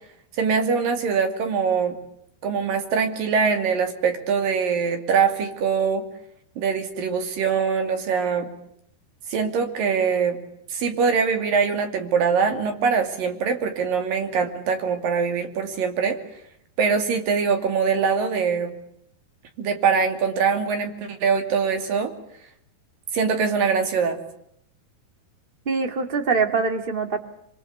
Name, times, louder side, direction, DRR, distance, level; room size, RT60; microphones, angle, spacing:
voice 1, 0.4-2.0 2.4-6.1 6.6-8.5 9.3-10.4 10.7-16.2 16.8-18.7 19.6-22.1 23.1-24.2, right 5 dB, 60° right, 6 dB, 4.2 m, -23 dB
voice 2, 25.6-27.2, right 4 dB, 25° right, 6 dB, 1.1 m, -23 dB
25.5 x 25.0 x 8.4 m, 0.72 s
omnidirectional pair, 4.7 m